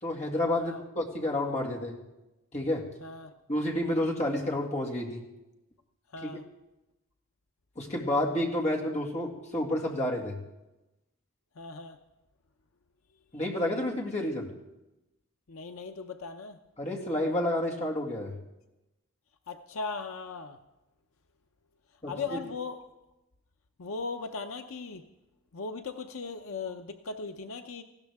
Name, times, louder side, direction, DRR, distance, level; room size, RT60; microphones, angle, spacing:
voice 1, 0.0-2.0 2.5-2.9 3.5-5.2 6.2-6.3 7.8-10.4 13.3-14.5 16.8-18.4 22.0-22.4, left 1 dB, 35° left, -2 dB, 2.1 m, -30 dB
voice 2, 3.0-3.3 6.1-6.4 11.6-12.0 15.5-16.6 19.5-20.6 22.1-22.8 23.8-25.0 25.5-27.8, left 4 dB, 80° left, 7 dB, 0.7 m, -38 dB
19.0 x 16.0 x 3.6 m, 0.98 s
head